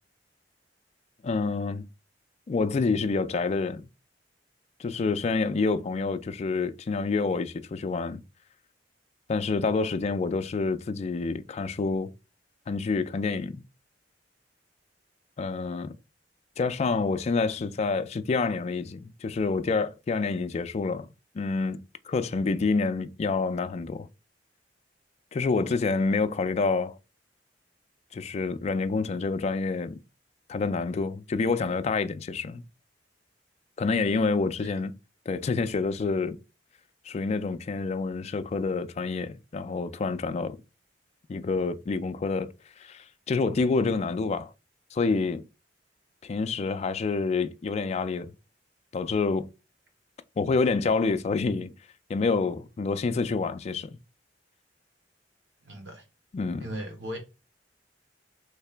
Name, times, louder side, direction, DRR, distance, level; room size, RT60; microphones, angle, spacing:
voice 1, 1.2-1.9 2.5-3.9 4.8-8.2 9.3-12.1 12.7-13.6 15.4-15.9 16.6-21.1 21.3-21.8 22.1-24.1 25.3-27.0 28.1-30.0 30.5-32.6 33.8-34.9 35.3-36.4 37.1-40.6 41.3-42.5 42.8-44.5 44.9-45.4 46.2-48.3 48.9-49.5 50.4-51.7 52.1-54.0 56.3-56.7, left 4 dB, 35° left, 0.3 m, -27 dB
voice 2, 55.6-56.0 56.6-57.2, equal, 90° right, 1.4 m, -37 dB
3.3 x 2.8 x 3.3 m
head